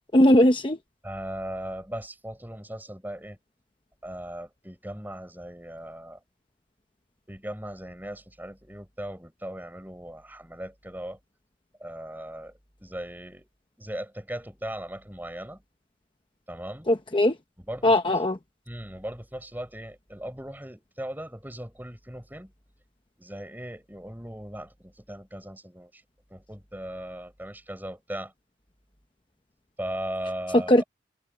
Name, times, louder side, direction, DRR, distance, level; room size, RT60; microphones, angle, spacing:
voice 1, 0.1-0.8 16.9-17.4 17.8-18.4 30.5-30.8, left 1 dB, 25° left, 0.8 m, -19 dB
voice 2, 1.0-3.4 4.0-6.2 7.3-11.2 11.8-13.5 13.8-15.6 16.5-16.9 17.7-18.0 18.7-22.5 23.2-26.0 26.3-28.3 29.8-30.8, right 1 dB, 10° right, 6.2 m, -38 dB
head